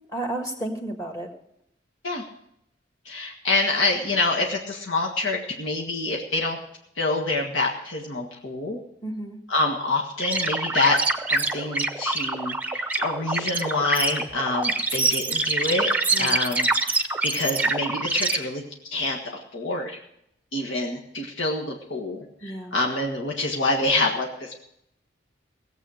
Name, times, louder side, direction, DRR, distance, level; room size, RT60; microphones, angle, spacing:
voice 1, 0.1-1.3 9.0-9.4 16.1-16.4 22.4-22.7, right 1 dB, 15° left, 3 dB, 1.7 m, -32 dB
voice 2, 3.0-6.6 7.0-8.8 9.5-11.0 11.3-15.9 16.2-19.2 19.5-20.0 20.5-24.5, left 2 dB, 85° left, 0 dB, 1.7 m, -26 dB
sound 1, 10.2-18.4, right 3 dB, 10° right, 0.7 m, -25 dB
18.0 x 8.0 x 6.5 m, 0.76 s
head